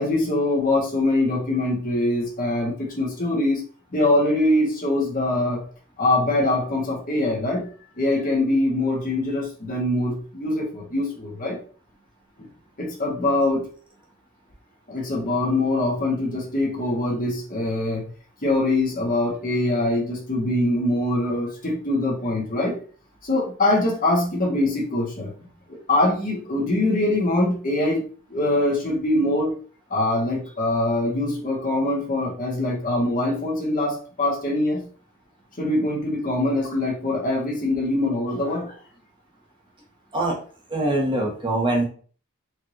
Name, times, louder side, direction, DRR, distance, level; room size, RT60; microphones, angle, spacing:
voice 1, 0.0-3.6 3.9-5.6 6.0-7.7 8.0-11.6 12.4-12.5 12.8-13.6 14.9-18.0 18.4-22.8 23.2-25.3 25.9-29.5 29.9-34.9 35.6-38.7, left 1 dB, 40° left, -2 dB, 1.3 m, -23 dB
voice 2, 40.7-41.8, right 1 dB, 20° right, -2 dB, 1.2 m, -23 dB
4.6 x 2.6 x 3.0 m, 0.41 s
head